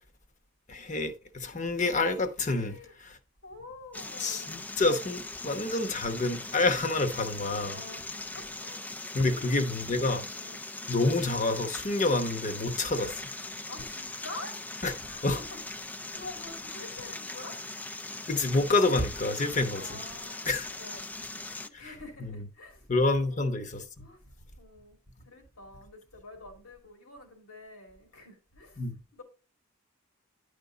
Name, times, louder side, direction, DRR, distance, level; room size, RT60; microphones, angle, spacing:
voice 1, 0.7-2.8 3.0-3.2 4.2-7.7 9.1-10.2 10.9-13.2 14.8-14.9 15.2-15.4 18.3-20.0 20.5-20.7 21.7-21.9 22.2-22.4 22.9-23.8 28.8-29.0, left 2 dB, 35° left, 0.9 m, -28 dB
voice 2, 2.5-2.9 3.4-4.7 5.8-6.0 7.6-8.9 9.2-9.5 10.0-10.6 13.7-14.6 15.0-17.6 19.4-21.0 21.5-22.9 23.2-23.4 24.0-24.2 24.6-25.0 25.2-29.2, left 2 dB, 85° left, 2.7 m, -47 dB
sound 1, 3.9-21.7, left 2 dB, 5° left, 0.3 m, -40 dB
10.0 x 5.2 x 3.9 m
head